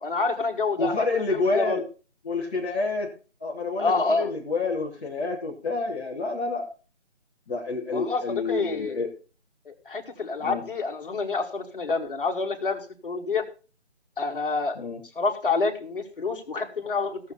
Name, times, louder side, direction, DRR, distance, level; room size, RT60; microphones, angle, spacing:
voice 1, 0.0-1.0 1.5-1.8 3.8-4.3 7.9-9.0 9.7-13.4 14.2-14.8 15.2-17.2, left 4 dB, 50° left, 3 dB, 2.0 m, -27 dB
voice 2, 0.8-1.8 2.2-3.1 3.4-6.7 7.5-9.1 10.4-10.6 14.7-15.0, left 3 dB, 10° left, -8 dB, 1.0 m, -28 dB
16.5 x 6.9 x 4.0 m, 0.35 s
figure-of-eight pair, 165°, 36 cm